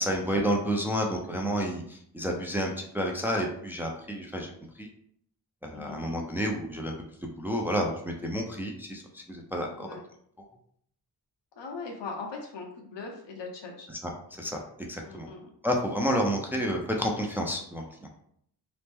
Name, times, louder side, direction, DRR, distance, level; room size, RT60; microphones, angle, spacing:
voice 1, 0.0-4.5 4.8-4.9 5.6-6.9 7.2-9.9 14.0-14.1 14.4-15.3 15.6-17.8, equal, 5° right, 1 dB, 0.4 m, -30 dB
voice 2, 11.6-13.9 15.0-15.5, left 4 dB, 80° left, 1 dB, 0.8 m, -40 dB
3.0 x 2.1 x 3.4 m, 0.67 s
wide cardioid pair, 100°, 42 cm